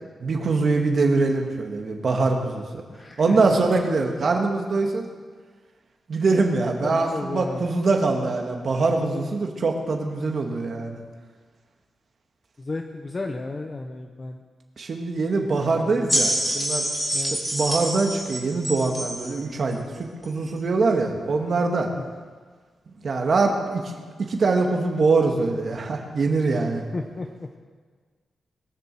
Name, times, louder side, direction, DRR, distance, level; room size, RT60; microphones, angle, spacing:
voice 1, 0.2-2.8 3.2-5.1 6.1-11.0 14.8-16.8 17.2-21.9 23.0-23.9 24.3-26.8, right 3 dB, 45° right, 2 dB, 1.9 m, -23 dB
voice 2, 2.9-3.4 6.8-7.7 12.6-14.4 15.8-16.1 17.1-17.4 21.9-22.2 26.9-27.5, left 3 dB, 25° left, 4 dB, 0.7 m, -33 dB
sound 1, 16.1-19.4 20.2-20.3, right 1 dB, 5° left, 3.3 m, -26 dB
21.0 x 7.2 x 7.6 m, 1.6 s
wide cardioid pair, 165°, 0 cm